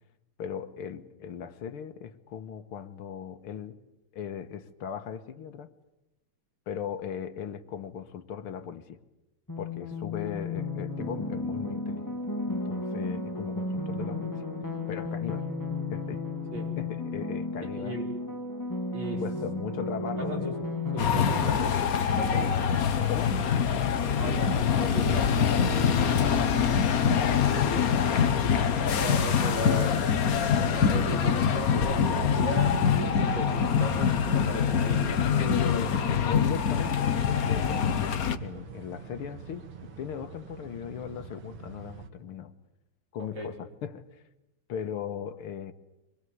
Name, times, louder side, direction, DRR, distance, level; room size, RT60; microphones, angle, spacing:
voice 1, 0.4-3.8 4.1-5.7 6.7-9.0 9.6-12.0 12.5-14.5 14.9-15.5 15.9-16.2 16.8-18.0 19.1-20.5 23.1-23.4 26.8-29.1 35.4-39.7 40.0-42.5 43.1-44.2 44.7-45.7, left 8 dB, 85° left, 10 dB, 2.1 m, -38 dB
sound 1, 9.5-21.5, left 2 dB, 10° left, 1.9 m, -33 dB
voice 2, 17.6-18.2 18.9-19.2 20.2-20.6 20.9-22.6 24.2-25.4 29.0-30.0 30.5-35.8 43.2-43.5, right 1 dB, 55° right, 1 dB, 4.9 m, -37 dB
sound 2, 21.0-38.4, left 7 dB, 50° left, 1.4 m, -25 dB
sound 3, 22.5-42.1, right 6 dB, 85° right, 2.7 m, -41 dB
24.5 x 21.0 x 9.5 m, 0.97 s
omnidirectional pair, 2.3 m